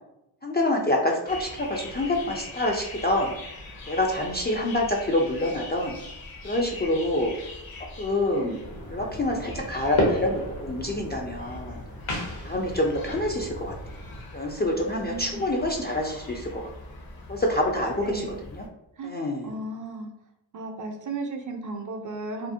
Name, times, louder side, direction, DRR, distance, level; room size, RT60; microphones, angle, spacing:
voice 1, 0.4-3.3 3.9-6.0 6.4-7.3 8.0-8.6 8.9-11.8 12.4-13.7 14.3-16.6 17.3-18.3 18.5-18.6 19.0-19.5, left 1 dB, 25° left, -1 dB, 0.3 m, -26 dB
sound 1, 1.3-18.7, left 2 dB, 50° left, 0.7 m, -43 dB
sound 2, 8.6-14.2, left 1 dB, 70° left, 0.9 m, -32 dB
voice 2, 14.8-15.5 18.0-18.4 19.0-19.1 19.4-20.1 20.5-22.5, right 3 dB, 40° right, 4 dB, 0.5 m, -35 dB
2.5 x 2.0 x 2.6 m, 0.87 s
cardioid pair, 45°, 48 cm